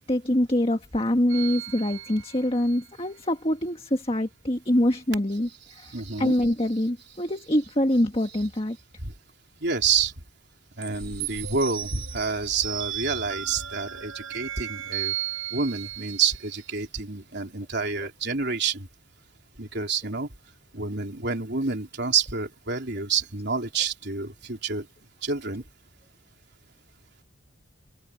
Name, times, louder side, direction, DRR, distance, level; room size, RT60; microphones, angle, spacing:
voice 1, 0.1-5.5 5.8-5.9 6.2-8.8, left 1 dB, 25° left, 1.7 m, -24 dB
sound 1, 1.3-2.8 10.8-16.6, right 11 dB, 85° right, 7.8 m, -35 dB
voice 2, 5.7-6.4 9.0-9.1 9.6-10.1 10.8-15.1 15.5-18.9 19.6-20.3 20.7-24.9 25.2-25.6, right 5 dB, 50° right, 3.9 m, -28 dB
head